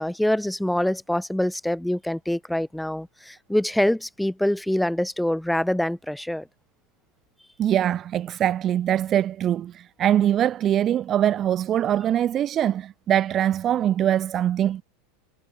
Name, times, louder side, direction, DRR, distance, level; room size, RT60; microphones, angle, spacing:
voice 1, 0.0-6.5, left 1 dB, 5° left, 1.3 m, -25 dB
voice 2, 7.6-14.8, right 11 dB, 35° right, 0.4 m, -23 dB
hypercardioid pair, 110°, 0 cm